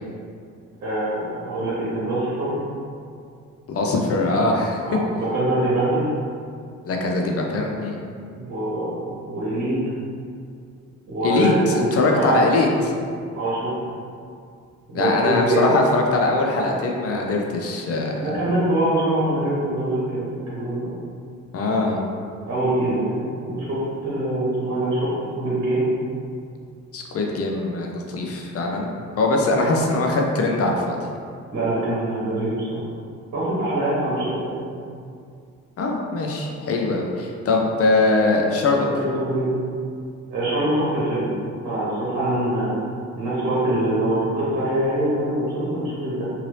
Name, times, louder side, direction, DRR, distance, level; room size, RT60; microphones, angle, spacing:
voice 1, 0.8-2.6 4.8-6.1 8.3-9.8 11.1-11.8 12.1-12.4 13.3-13.7 14.9-15.6 18.2-20.9 22.5-25.8 29.5-29.7 31.5-32.8 33.3-34.6 39.0-39.5 40.3-41.3 41.6-42.7 43.2-46.2, right 1 dB, 60° right, -8 dB, 1.2 m, -24 dB
voice 2, 3.7-4.8 6.8-8.0 11.2-12.9 14.9-18.5 21.5-22.0 26.9-31.0 35.8-38.9, left 2 dB, 50° left, 0 dB, 0.6 m, -22 dB
2.8 x 2.6 x 3.2 m, 2.3 s
cardioid pair, 90°, 30 cm